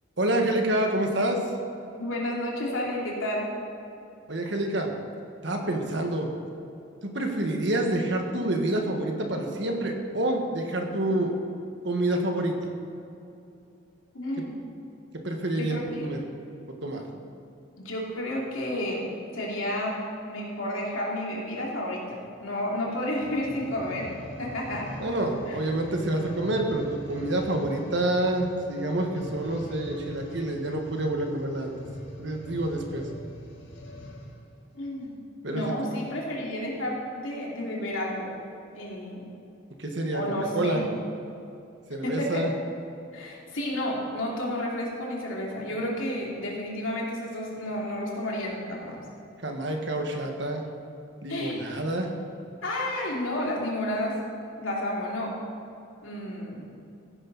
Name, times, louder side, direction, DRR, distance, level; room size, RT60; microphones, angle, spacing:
voice 1, 0.2-1.5 4.3-4.9 5.4-6.3 7.0-11.3 11.8-12.7 14.4-14.5 15.2-16.2 16.8-17.0 25.0-31.7 32.2-33.0 35.4-35.7 39.8-40.2 40.5-40.8 41.9-42.5 49.4-50.7 51.2-52.1, right 1 dB, 60° right, 3 dB, 1.5 m, -27 dB
voice 2, 2.0-3.5 14.1-14.6 15.6-16.1 17.8-19.0 19.3-20.0 20.2-24.1 24.4-24.9 25.5-25.6 34.7-35.2 35.5-38.3 38.7-39.3 40.1-40.9 42.0-42.4 43.1-49.0 51.3-51.7 52.6-54.2 54.6-55.4 56.0-56.7, left 1 dB, 85° left, -3 dB, 2.9 m, -31 dB
sound 1, 23.1-34.4 35.0-35.1, equal, 60° left, 2.1 m, -42 dB
15.5 x 10.5 x 4.1 m, 2.7 s
head